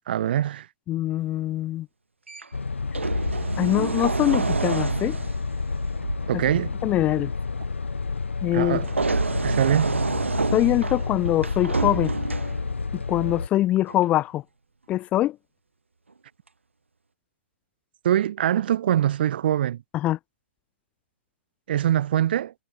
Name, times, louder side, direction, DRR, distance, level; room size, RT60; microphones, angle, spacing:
voice 1, 0.1-0.7 6.3-6.7 8.5-8.9 9.4-10.0 18.0-19.8 21.7-22.5, right 11 dB, 55° right, 1.1 m, -23 dB
voice 2, 0.9-1.9 3.6-5.2 6.3-6.4 6.8-7.3 8.4-8.8 10.5-12.1 12.9-14.4 14.9-15.4 19.9-20.2, left 14 dB, 20° left, 0.5 m, -23 dB
sound 1, 2.3-2.4 2.9-6.4 8.8-12.9 13.9-14.1, right 4 dB, 85° right, 3.9 m, -28 dB
sound 2, 2.5-13.5, left 4 dB, 85° left, 1.9 m, -30 dB
hypercardioid pair, 130°, 6 cm